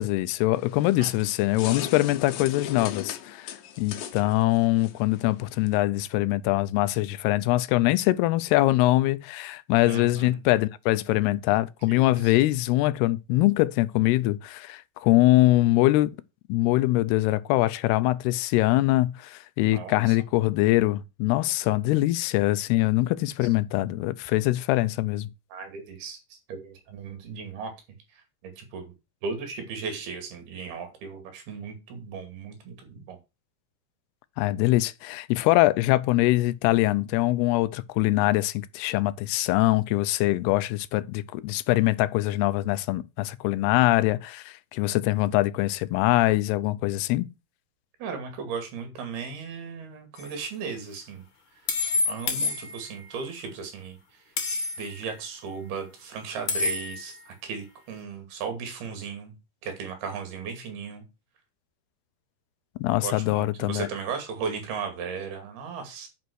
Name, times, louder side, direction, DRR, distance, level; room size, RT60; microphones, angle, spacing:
voice 1, 0.0-16.1 16.5-25.3 34.4-47.3 62.8-63.9, left 17 dB, 85° left, 2.7 m, -23 dB
sound 1, 0.5-5.8, left 10 dB, 70° left, 2.5 m, -38 dB
voice 2, 9.9-10.4 11.9-12.3 19.7-20.2 25.5-27.7 28.4-28.9 29.2-33.2 48.0-51.2 52.1-54.0 54.8-59.4 59.6-61.0 62.9-66.1, right 5 dB, 75° right, 4.2 m, -36 dB
sound 2, 50.2-50.3 51.7-53.1 54.4-55.0 56.5-57.2, left 4 dB, 40° left, 2.2 m, -28 dB
9.5 x 5.5 x 6.3 m
omnidirectional pair, 4.6 m